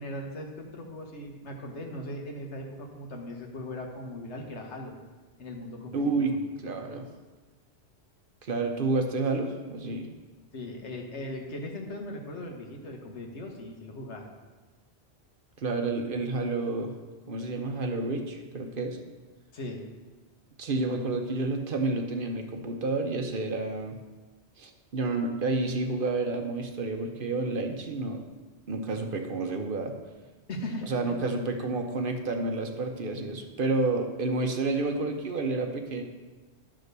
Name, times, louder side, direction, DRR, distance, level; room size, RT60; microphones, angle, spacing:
voice 1, 0.0-5.0 5.4-6.4 10.5-14.3 19.5-19.8 30.5-31.2 31.6-31.7, left 1 dB, 85° left, 2 dB, 1.5 m, -39 dB
voice 2, 5.9-6.3 6.6-7.1 8.4-10.1 15.6-16.9 17.3-19.0 20.6-24.0 24.6-28.2 28.7-29.9 30.9-36.0, right 3 dB, 55° right, 4 dB, 1.0 m, -30 dB
11.0 x 3.7 x 6.6 m, 1.3 s
omnidirectional pair, 1.1 m